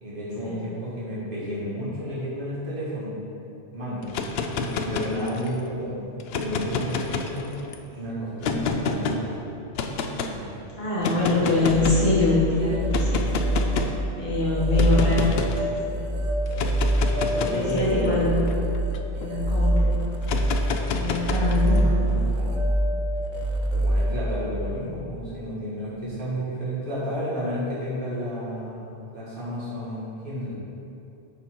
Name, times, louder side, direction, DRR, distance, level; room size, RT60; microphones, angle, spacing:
voice 1, 0.0-3.2 3.7-4.3 4.6-7.6 7.9-9.4 10.1-10.5 11.4-11.7 13.7-13.9 17.3-18.4 21.6-22.6 23.7-30.5, equal, 45° right, -8 dB, 2.2 m, -32 dB
sound 1, 4.0-5.6 6.2-7.7 8.4-9.2 9.8-10.3 11.0-12.1 12.9-14.0 14.8-15.6 16.5-19.3 20.2-21.8, left 4 dB, 65° left, 0.8 m, -29 dB
voice 2, 8.5-9.0 10.8-13.3 14.1-15.3 15.7-16.0 17.3-18.5 19.1-20.0 20.9-22.1, left 3 dB, 40° left, -9 dB, 2.2 m, -25 dB
sound 2, 11.5-24.9, right 1 dB, 85° right, 1.1 m, -25 dB
11.0 x 4.3 x 4.5 m, 2.9 s
omnidirectional pair, 1.2 m